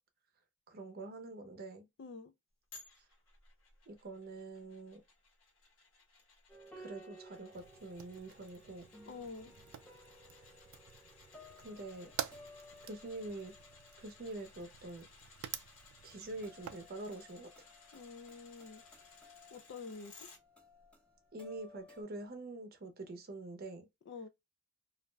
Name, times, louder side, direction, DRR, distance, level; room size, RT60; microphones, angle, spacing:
voice 1, 0.7-1.9 3.9-5.0 6.8-8.8 11.6-12.1 12.8-13.5 14.0-15.1 16.0-17.5 21.3-23.9, right 2 dB, 50° right, 0.6 m, -45 dB
voice 2, 2.0-2.3 9.0-9.6 17.9-18.8 19.5-20.3 24.1-24.3, left 4 dB, 60° left, 0.4 m, -48 dB
sound 1, 2.7-20.4 20.8-20.9, left 4 dB, 85° left, 1.1 m, -60 dB
sound 2, 6.5-22.0, equal, 5° left, 0.6 m, -58 dB
Fire, 7.5-16.9, right 10 dB, 90° right, 0.3 m, -49 dB
2.4 x 2.1 x 3.1 m
head